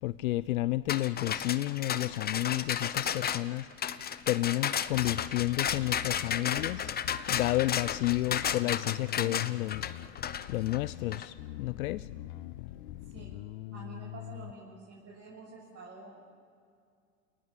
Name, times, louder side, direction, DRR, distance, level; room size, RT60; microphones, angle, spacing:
voice 1, 0.0-3.7 4.3-6.9 7.3-10.0 10.4-13.1, left 17 dB, 85° left, 16 dB, 0.6 m, -31 dB
sound 1, 0.9-11.3, left 8 dB, 25° left, 0.9 m, -33 dB
Bass guitar, 4.9-14.5, left 15 dB, 60° left, 1.0 m, -43 dB
voice 2, 13.7-16.2, right 3 dB, 35° right, -4 dB, 6.9 m, -48 dB
29.0 x 19.0 x 7.6 m, 2.3 s
hypercardioid pair, 105°, 41 cm